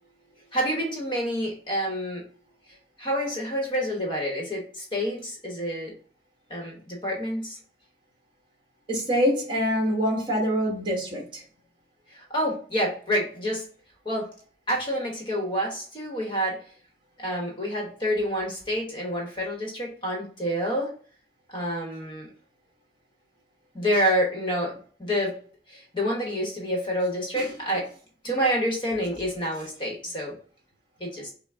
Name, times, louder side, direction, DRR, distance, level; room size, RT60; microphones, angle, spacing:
voice 1, 0.5-2.2 3.0-5.9 6.5-7.6 12.3-13.6 14.0-14.3 14.7-16.6 17.2-20.9 21.5-22.3 23.7-24.7 25.0-25.3 25.7-27.9 28.2-30.3 31.0-31.3, equal, 25° left, 1.0 m, -28 dB
voice 2, 8.9-11.4 27.3-27.5, equal, 25° right, 1.4 m, -25 dB
5.6 x 2.0 x 3.5 m
head